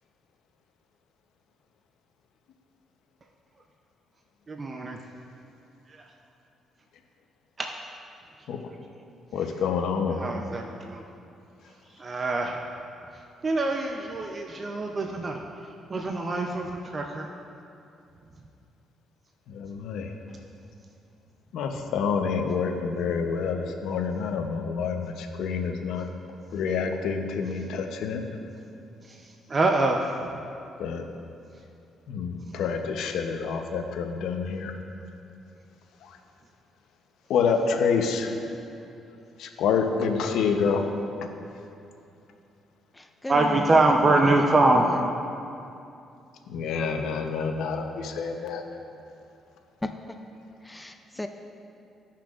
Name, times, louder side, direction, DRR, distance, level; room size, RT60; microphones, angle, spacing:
voice 1, 4.5-5.0 5.9-6.0 7.6-7.7 10.2-11.0 12.0-12.6 13.4-15.4 15.9-17.3 29.1-30.0 43.3-44.9, right 2 dB, 35° right, 2 dB, 0.6 m, -24 dB
voice 2, 9.3-10.2 19.5-20.1 21.5-26.1 26.5-28.4 30.8-31.0 32.1-34.7 36.0-36.2 37.3-38.4 39.4-40.9 46.5-48.6, left 5 dB, 80° left, 4 dB, 0.8 m, -27 dB
voice 3, 42.9-45.1 49.8-49.9 50.6-51.3, left 1 dB, 10° left, 6 dB, 0.4 m, -36 dB
15.5 x 5.8 x 2.5 m, 2.6 s
cardioid pair, 90°, 0 cm